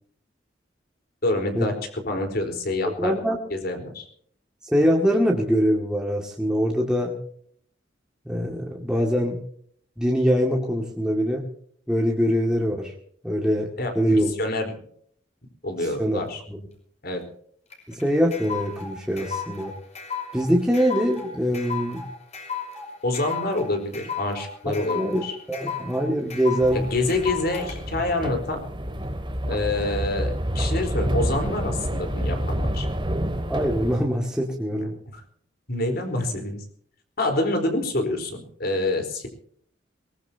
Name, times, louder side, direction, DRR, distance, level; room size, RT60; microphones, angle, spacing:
voice 1, 1.2-3.2 3.5-4.1 13.8-14.7 15.6-16.4 17.0-17.2 23.0-25.4 26.7-28.6 29.5-32.9 35.1-35.2 35.7-36.6 37.2-39.3, left 2 dB, 60° left, 5 dB, 4.3 m, -27 dB
voice 2, 3.0-3.4 4.6-7.1 8.3-9.4 10.0-11.5 11.9-12.9 13.2-13.7 14.0-14.3 16.0-16.2 16.5-16.6 17.9-19.7 20.3-22.0 24.7-25.2 25.5-26.8 33.5-34.9, equal, 5° right, -2 dB, 2.2 m, -23 dB
sound 1, 17.7-27.7, left 6 dB, 40° left, 5.8 m, -34 dB
sound 2, 26.6-34.0, equal, 30° right, 2.3 m, -28 dB
22.0 x 20.0 x 2.9 m, 0.62 s
head